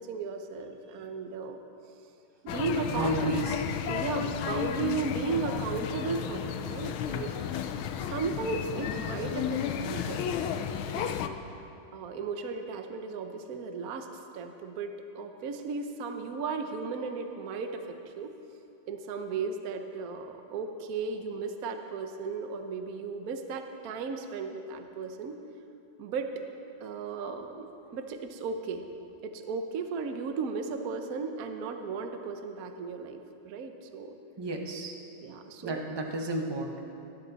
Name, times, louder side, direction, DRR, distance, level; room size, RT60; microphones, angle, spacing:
voice 1, 0.0-1.6 2.4-3.3 3.9-7.3 8.0-10.6 11.0-11.1 11.6-11.7 11.9-18.3 18.9-25.4 26.0-26.4 26.8-28.8 29.2-34.1 35.2-35.8, right 4 dB, 55° right, 6 dB, 1.1 m, -35 dB
sound 1, 2.5-11.3, left 9 dB, 85° left, 1.5 m, -33 dB
voice 2, 2.9-3.6 34.4-34.9 35.6-36.8, right 1 dB, 25° right, 2 dB, 0.5 m, -32 dB
18.5 x 11.5 x 4.0 m, 2.7 s
omnidirectional pair, 2.2 m